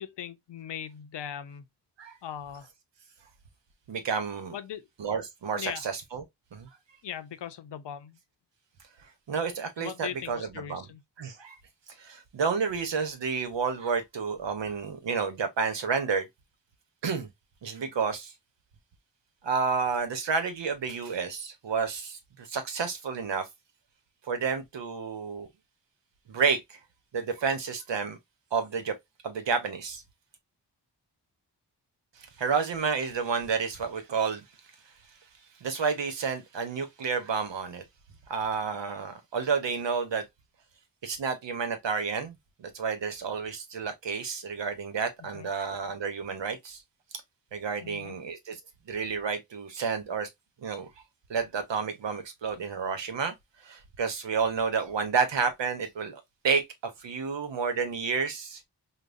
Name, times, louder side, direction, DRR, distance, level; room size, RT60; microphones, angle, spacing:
voice 1, 0.0-1.6 2.2-2.7 4.5-4.9 5.5-5.8 7.0-8.2 9.8-11.0 45.2-45.5 47.8-48.1, left 9 dB, 75° left, 0.6 m, -39 dB
voice 2, 3.9-4.6 5.0-6.2 6.5-6.7 9.3-10.9 11.2-11.6 12.0-16.3 17.0-17.3 17.6-18.3 19.4-23.5 24.3-25.5 26.3-26.8 27.1-28.2 28.5-28.9 29.2-30.0 32.2-34.4 35.6-37.8 38.3-40.3 41.0-46.8 47.5-48.6 48.9-50.3 50.6-50.9 51.3-53.3 53.6-58.6, right 5 dB, 85° right, 1.0 m, -30 dB
5.2 x 2.2 x 2.5 m
wide cardioid pair, 80°, 42 cm